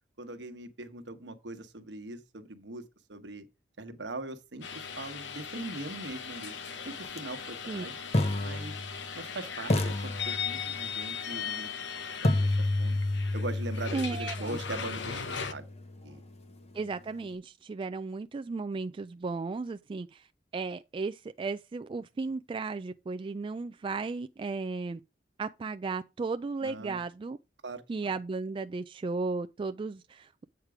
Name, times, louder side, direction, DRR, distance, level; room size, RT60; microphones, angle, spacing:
voice 1, 0.2-2.8 3.1-3.5 3.8-6.5 6.8-8.0 8.4-8.8 9.1-11.7 12.2-12.9 13.3-15.6 16.0-16.2 26.6-27.0 27.6-28.1, right 2 dB, 75° right, 1.2 m, -41 dB
sound 1, 4.6-15.5, left 7 dB, 90° left, 0.9 m, -38 dB
sound 2, 7.0-7.2 8.1-9.3 9.7-10.9 12.2-16.2, left 2 dB, 35° left, 0.9 m, -31 dB
voice 2, 13.9-14.6 16.7-20.2 20.5-25.0 25.4-27.4 27.9-30.4, right 4 dB, 30° right, 0.3 m, -35 dB
8.1 x 4.5 x 4.9 m
head